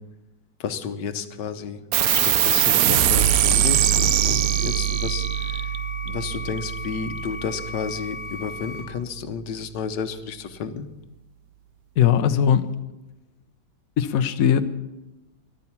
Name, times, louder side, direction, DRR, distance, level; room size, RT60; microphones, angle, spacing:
voice 1, 0.6-1.8 2.1-5.5 6.1-10.9, left 6 dB, 85° left, 10 dB, 1.5 m, -31 dB
sound 1, 1.9-8.8, right 11 dB, 65° right, 1.0 m, -22 dB
sound 2, 2.3-8.8, left 3 dB, 40° right, 3.7 m, -37 dB
voice 2, 12.0-12.7 14.0-14.6, left 9 dB, 60° left, 9 dB, 1.1 m, -19 dB
13.5 x 11.5 x 7.2 m, 1.0 s
omnidirectional pair, 1.8 m